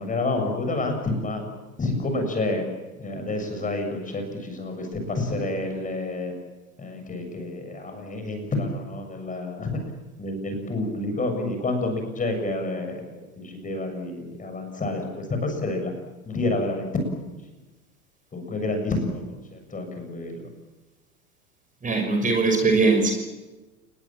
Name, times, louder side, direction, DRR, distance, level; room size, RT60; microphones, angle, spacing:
voice 1, 0.0-1.4 1.8-2.6 3.0-6.3 6.8-9.8 10.2-15.9 16.3-17.4 18.3-20.5, left 2 dB, 15° left, 5 dB, 7.2 m, -29 dB
voice 2, 21.8-23.1, right 3 dB, 15° right, 4 dB, 5.9 m, -20 dB
30.0 x 21.0 x 7.5 m, 1.1 s
figure-of-eight pair, 90°, 45 cm